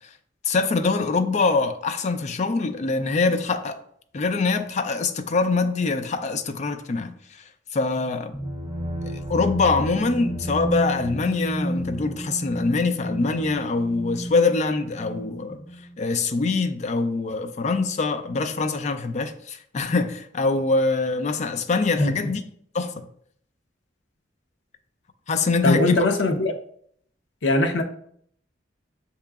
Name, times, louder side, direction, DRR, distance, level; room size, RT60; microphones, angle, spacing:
voice 1, 0.5-3.8 4.1-7.2 7.7-8.4 9.1-15.6 16.0-22.4 22.7-23.1 25.3-26.1, left 3 dB, 40° left, 0.4 m, -24 dB
sound 1, 8.3-16.0, equal, 35° right, 0.8 m, -32 dB
voice 2, 22.0-22.3 25.6-26.5 27.4-27.8, left 2 dB, 85° left, 0.6 m, -21 dB
6.4 x 2.9 x 2.3 m
head